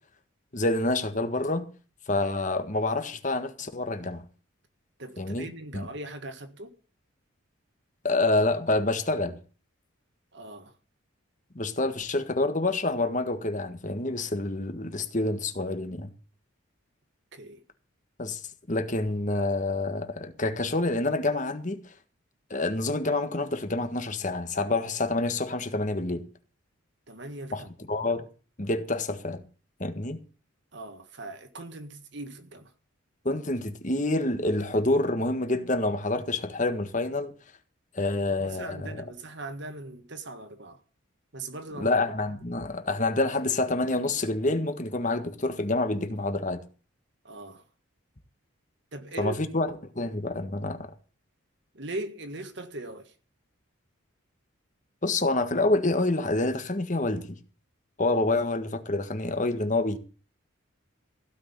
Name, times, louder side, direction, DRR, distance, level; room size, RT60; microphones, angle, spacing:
voice 1, 0.5-1.7 2.1-4.2 5.2-5.5 5.7-5.9 8.0-9.4 11.5-16.1 18.2-18.4 18.7-21.8 22.5-26.2 27.5-27.6 27.9-28.2 28.6-29.4 29.8-30.2 33.2-37.3 37.9-39.0 41.8-46.6 49.2-50.9 55.0-57.4 58.0-60.0, left 2 dB, 35° left, 1.6 m, -27 dB
voice 2, 5.0-6.8 10.3-10.7 17.3-17.6 27.1-27.7 30.7-32.7 38.4-40.8 41.3-41.9 42.5-42.6 47.2-47.6 48.9-49.5 51.7-53.1, right 2 dB, 55° right, 1.7 m, -40 dB
16.0 x 6.3 x 8.9 m
head